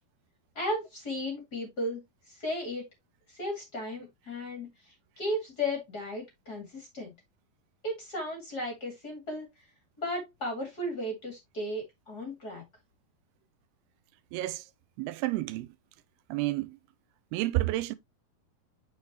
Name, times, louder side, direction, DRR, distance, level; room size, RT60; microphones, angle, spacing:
voice 1, 0.5-2.0 2.3-2.8 3.3-7.1 7.8-9.5 10.0-12.6, left 1 dB, 30° left, 2.2 m, -35 dB
voice 2, 14.3-14.6 15.0-15.7 16.3-16.7 17.3-17.9, right 17 dB, 85° right, 2.6 m, -30 dB
7.2 x 6.2 x 2.8 m
omnidirectional pair, 4.4 m